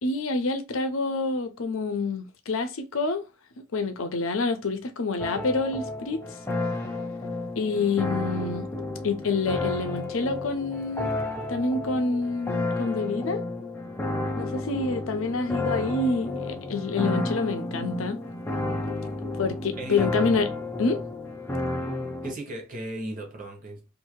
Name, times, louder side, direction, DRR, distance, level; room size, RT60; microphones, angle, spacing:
voice 1, 0.0-3.2 3.7-6.2 7.6-8.7 9.0-11.2 11.5-13.4 14.4-18.2 19.4-20.5 20.8-21.0, left 3 dB, 75° left, 0.6 m, -27 dB
sound 1, 5.2-22.3, left 2 dB, 10° left, 0.4 m, -31 dB
voice 2, 19.8-20.2 22.2-23.8, right 1 dB, 40° right, 0.9 m, -36 dB
2.7 x 2.6 x 2.9 m
head